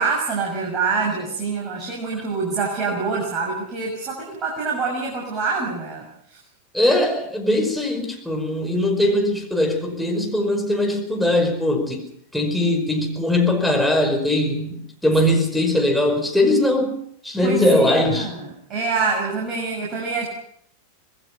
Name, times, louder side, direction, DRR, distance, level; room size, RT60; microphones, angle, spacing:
voice 1, 0.0-6.0 17.4-20.3, right 4 dB, 30° right, -2 dB, 6.6 m, -25 dB
voice 2, 6.7-12.0 12.3-16.9 17.2-18.3, left 1 dB, ahead, 2 dB, 5.2 m, -20 dB
26.0 x 20.0 x 5.8 m, 0.66 s
figure-of-eight pair, 90°, 0 cm